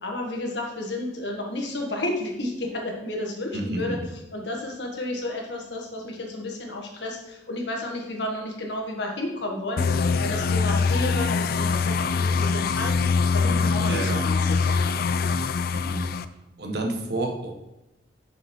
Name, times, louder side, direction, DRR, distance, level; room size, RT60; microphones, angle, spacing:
voice 1, 0.0-4.0 4.3-13.1 13.3-14.8, left 1 dB, 75° left, 0 dB, 1.6 m, -32 dB
voice 2, 3.5-4.1 13.9-14.3 15.7-16.2 16.6-17.5, right 2 dB, 65° right, 2 dB, 1.2 m, -30 dB
sound 1, 9.8-16.2, left 4 dB, 55° left, 0.4 m, -23 dB
6.5 x 5.5 x 4.5 m, 0.93 s
head